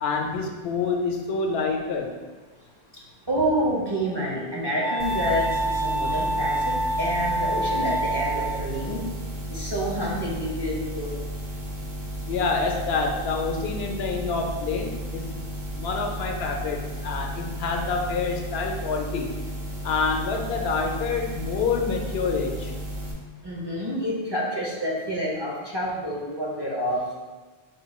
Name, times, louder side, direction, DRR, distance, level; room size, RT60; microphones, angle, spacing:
voice 1, 0.0-2.2 12.3-15.2 15.7-19.3 19.8-22.7, left 4 dB, 80° left, 2 dB, 0.8 m, -27 dB
voice 2, 3.3-5.5 5.7-9.1 9.5-11.1 23.4-27.0, equal, 30° right, -5 dB, 0.5 m, -28 dB
Wind instrument woodwind instrument, 3.6-8.9, right 1 dB, 80° right, 1.2 m, -28 dB
sound 1, 5.0-23.1, equal, 55° right, 0.8 m, -34 dB
4.6 x 2.2 x 4.1 m, 1.3 s
omnidirectional pair, 1.1 m